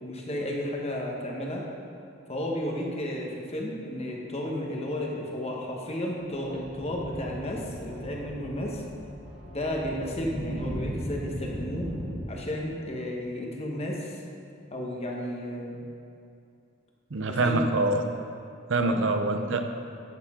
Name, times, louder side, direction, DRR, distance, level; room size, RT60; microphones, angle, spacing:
voice 1, 0.0-1.6 2.3-8.8 9.5-11.9 12.3-14.2 14.7-15.8 17.3-17.6 18.8-19.1, left 1 dB, 30° left, -1 dB, 1.2 m, -33 dB
sound 1, 6.2-12.2, equal, 10° right, 1.9 m, -38 dB
voice 2, 17.1-18.0 18.7-19.6, right 2 dB, 65° right, 6 dB, 0.7 m, -25 dB
11.0 x 7.0 x 3.7 m, 2.5 s
head